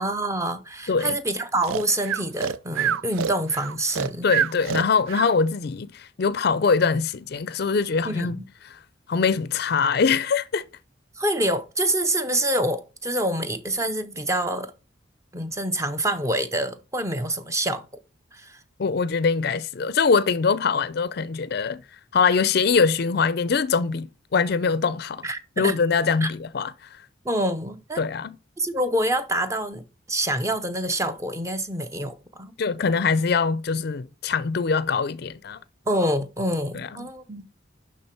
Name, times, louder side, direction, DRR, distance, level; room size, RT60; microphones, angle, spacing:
voice 1, 0.0-4.3 8.0-8.4 11.2-14.7 15.3-17.8 18.3-18.6 25.2-25.8 26.2-26.3 27.2-28.0 28.6-32.5 35.9-37.4, right 1 dB, 15° right, 0.6 m, -26 dB
voice 2, 0.9-1.2 4.2-8.4 8.7-8.8 9.1-10.6 18.8-21.8 22.1-25.2 25.6-27.0 28.0-28.4 32.6-35.6 36.7-37.1, left 5 dB, 50° left, 0.4 m, -23 dB
Breathing, 1.6-5.3, right 8 dB, 90° right, 0.4 m, -27 dB
11.0 x 3.8 x 4.3 m
head